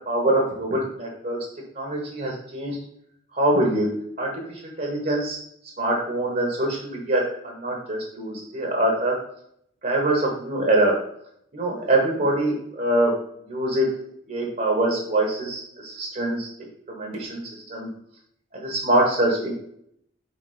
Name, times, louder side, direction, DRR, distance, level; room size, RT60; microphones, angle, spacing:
voice 1, 0.1-1.4 1.7-2.8 3.4-3.9 4.2-4.3 4.6-5.4 5.8-7.2 7.6-9.1 9.8-10.9 11.5-13.1 13.5-13.8 14.3-16.5 16.9-17.4 17.7-17.9 18.5-19.5, right 1 dB, 45° right, -1 dB, 1.3 m, -23 dB
4.8 x 4.1 x 5.0 m, 0.71 s
head